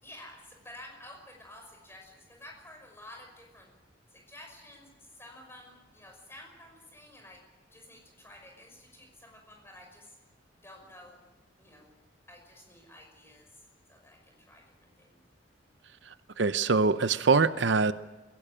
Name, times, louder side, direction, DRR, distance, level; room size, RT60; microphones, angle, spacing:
voice 1, 0.0-3.7 4.1-7.4 7.7-10.2 10.6-11.3 11.6-11.9 12.3-13.6 13.9-15.2, left 1 dB, 15° left, 2 dB, 5.7 m, -51 dB
voice 2, 16.1-17.9, right 4 dB, 65° right, 13 dB, 0.7 m, -24 dB
22.5 x 17.5 x 8.8 m, 1.2 s
head